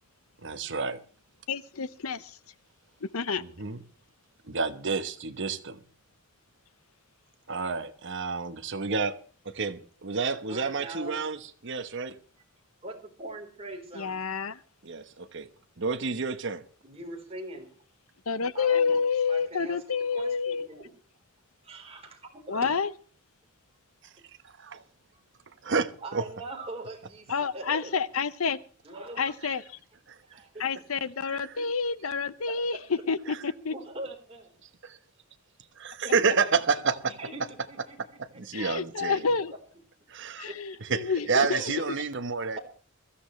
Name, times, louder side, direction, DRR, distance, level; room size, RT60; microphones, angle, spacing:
voice 1, 0.4-1.0 3.4-3.8 4.4-5.8 7.5-9.2 9.4-12.2 14.8-15.5 15.8-16.6 24.4-24.8 25.6-26.2 30.1-30.4 31.2-31.5 33.3-33.4 34.8-35.0 35.8-37.1 38.2-39.3 40.1-40.5 40.8-42.6, right 5 dB, 60° right, 1.1 m, -30 dB
voice 2, 1.5-2.4 3.0-3.4 13.9-14.6 18.3-20.7 22.5-22.9 27.3-28.6 29.2-29.6 30.6-32.8 33.1-33.7 38.5-39.5 40.4-41.9, left 5 dB, 85° left, 0.8 m, -29 dB
voice 3, 10.5-11.3 11.7-11.8 12.8-14.2 16.8-17.7 18.5-19.8 20.1-20.9 21.6-22.8 25.1-25.2 26.0-28.0 28.8-29.4 30.2-30.7 31.3-31.6 32.5-32.9 33.7-34.5 36.0-36.1 37.1-38.4 38.9-39.1 40.4-40.6 41.7-41.8, right 2 dB, 30° right, 4.1 m, -42 dB
22.5 x 14.0 x 3.2 m
head